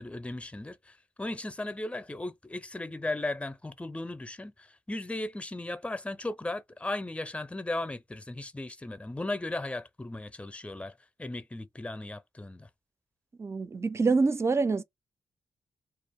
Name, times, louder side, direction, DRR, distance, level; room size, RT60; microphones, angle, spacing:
voice 1, 0.0-12.7, left 2 dB, 15° left, 0.6 m, -36 dB
voice 2, 13.4-14.8, right 4 dB, 30° right, 0.5 m, -26 dB
2.4 x 2.0 x 3.5 m
supercardioid pair, 40°, 9 cm